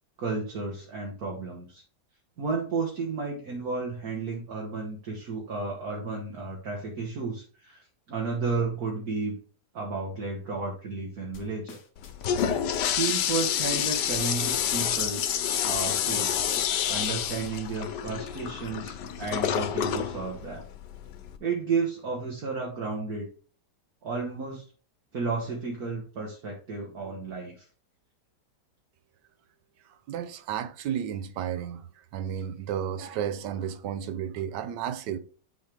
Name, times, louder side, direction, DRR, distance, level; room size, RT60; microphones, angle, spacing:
voice 1, 0.2-1.8 2.4-9.4 9.7-11.8 12.8-15.2 15.6-16.4 16.9-20.6 21.4-23.3 24.0-24.7 25.1-27.7, right 4 dB, 60° right, 1.9 m, -32 dB
sound 1, 11.3-16.9, left 6 dB, 55° left, 1.4 m, -47 dB
Toilet flush, 12.0-21.4, left 9 dB, 90° left, 1.4 m, -28 dB
voice 2, 30.1-31.9 32.1-35.2, right 9 dB, 85° right, 1.3 m, -32 dB
9.7 x 4.2 x 3.4 m
omnidirectional pair, 1.8 m